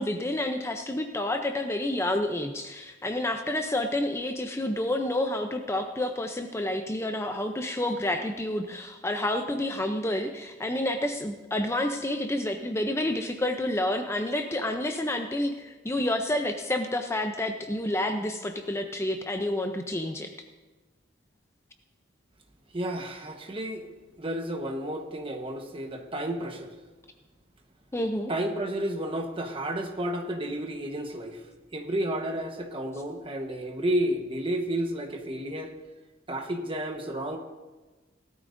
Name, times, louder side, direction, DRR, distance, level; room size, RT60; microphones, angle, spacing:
voice 1, 0.0-20.3 27.9-28.3, left 1 dB, 15° left, 5 dB, 0.6 m, -29 dB
voice 2, 22.7-26.7 28.3-31.4 31.7-35.7 36.3-37.4, right 1 dB, 30° right, 4 dB, 1.2 m, -31 dB
18.0 x 12.5 x 2.6 m, 1.3 s
head